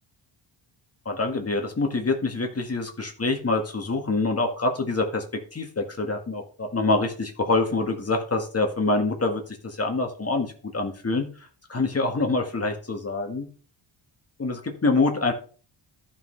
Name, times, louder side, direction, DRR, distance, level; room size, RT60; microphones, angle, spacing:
voice 1, 1.1-5.2 5.5-11.3 11.7-13.5 14.4-15.3, left 3 dB, 30° left, 3 dB, 1.8 m, -25 dB
14.0 x 5.8 x 3.4 m, 0.41 s
cardioid pair, 110°, 49 cm